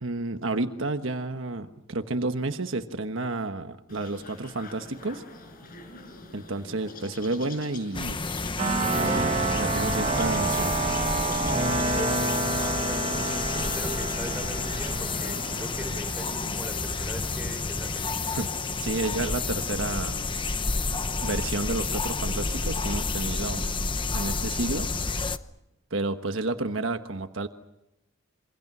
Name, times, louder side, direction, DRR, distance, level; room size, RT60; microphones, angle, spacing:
voice 1, 0.0-5.2 6.3-8.2 9.0-10.7 18.3-18.5 18.8-20.2 21.2-23.6 24.1-25.3 25.9-27.5, right 2 dB, 75° right, 7 dB, 1.3 m, -31 dB
sound 1, 3.9-17.6, left 2 dB, 45° left, 6.0 m, -44 dB
sound 2, 7.9-25.4, left 4 dB, 25° left, 0.9 m, -30 dB
sound 3, 8.6-17.2, right 3 dB, 35° right, 1.0 m, -29 dB
voice 2, 12.5-18.2, right 1 dB, 10° right, 4 dB, 4.7 m, -40 dB
28.0 x 24.5 x 6.2 m, 0.90 s
head